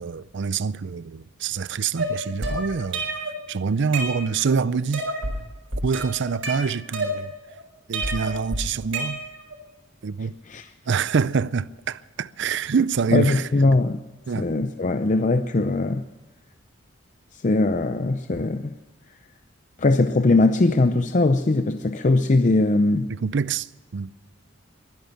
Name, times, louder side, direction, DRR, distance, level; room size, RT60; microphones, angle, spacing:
voice 1, 0.0-3.0 3.5-5.1 5.8-7.3 7.9-9.2 10.0-10.3 10.9-13.5 14.3-14.5 23.1-24.1, right 5 dB, 60° right, 0.5 m, -25 dB
sound 1, 2.0-3.4 3.7-4.5 4.9-5.4 5.7-7.5 7.9-9.5, right 1 dB, 85° right, 4.7 m, -29 dB
voice 2, 13.1-14.0 14.3-16.0 17.4-18.7 19.8-23.1, left 2 dB, 40° left, 0.6 m, -20 dB
22.5 x 10.5 x 5.8 m
head